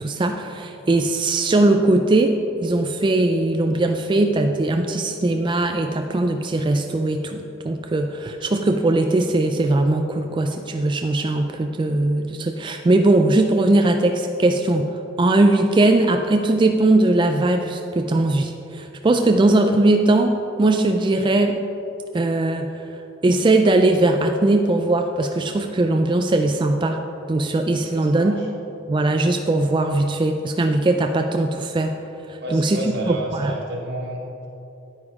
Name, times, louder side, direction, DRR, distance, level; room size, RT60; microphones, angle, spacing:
voice 1, 0.0-2.4 2.6-21.6 22.1-22.7 23.2-27.0 27.3-28.4 28.9-31.9 32.3-32.8 33.1-33.5, right 2 dB, 25° right, 5 dB, 0.3 m, -20 dB
voice 2, 27.9-28.5 32.4-34.5, right 1 dB, 55° right, -2 dB, 1.8 m, -31 dB
9.7 x 9.6 x 3.6 m, 2.9 s
head